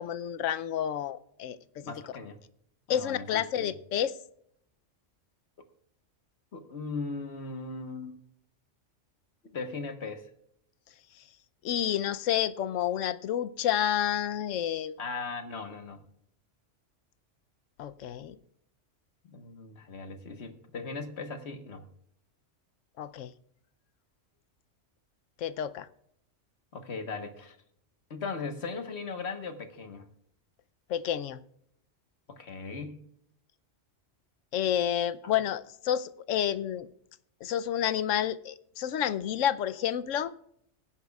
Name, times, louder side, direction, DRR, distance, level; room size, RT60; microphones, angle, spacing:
voice 1, 0.0-1.8 2.9-4.2 11.6-15.0 17.8-18.4 23.0-23.3 25.4-25.9 30.9-31.4 34.5-36.9 37.4-40.3, left 10 dB, 90° left, 1.0 m, -30 dB
voice 2, 1.8-2.4 2.9-3.7 6.5-8.2 9.5-10.3 15.0-16.0 19.3-21.8 26.7-27.6 28.1-30.0 32.3-33.1 35.2-35.3, left 4 dB, 60° left, 1.5 m, -38 dB
19.0 x 10.5 x 2.3 m
omnidirectional pair, 1.3 m